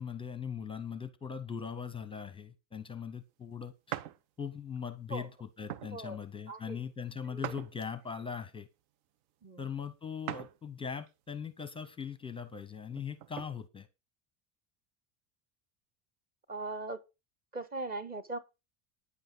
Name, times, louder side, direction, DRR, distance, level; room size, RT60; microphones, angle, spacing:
voice 1, 0.0-4.0 4.4-8.7 9.6-13.9, left 7 dB, 10° left, 0.7 m, -40 dB
sound 1, 3.9-4.2 4.8-5.0 5.7-6.0 7.4-8.2 10.3-10.6 11.1-11.2 12.8-13.5, right 11 dB, 70° right, 1.1 m, -41 dB
voice 2, 6.5-6.9 7.2-7.5 9.4-9.7 16.5-17.0 17.5-18.4, right 2 dB, 20° right, 0.8 m, -40 dB
9.9 x 8.0 x 6.0 m
cardioid pair, 175°, 50 cm